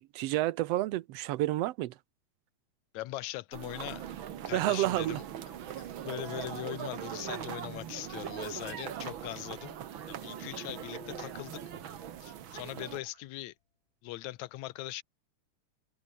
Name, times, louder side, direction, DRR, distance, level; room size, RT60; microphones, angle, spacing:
voice 1, 0.0-1.9 4.5-5.2, right 16 dB, 75° right, 1.5 m, -30 dB
voice 2, 2.9-4.0 4.5-5.2 5.7-9.8 10.1-11.6 12.2-13.5 14.0-15.0, left 17 dB, 75° left, 2.1 m, -41 dB
sound 1, 3.5-13.0, right 10 dB, 55° right, 1.5 m, -41 dB
sound 2, 4.0-13.3, right 4 dB, 40° right, 4.1 m, -58 dB
sound 3, 7.2-12.8, left 8 dB, 45° left, 2.0 m, -57 dB
omnidirectional pair, 3.5 m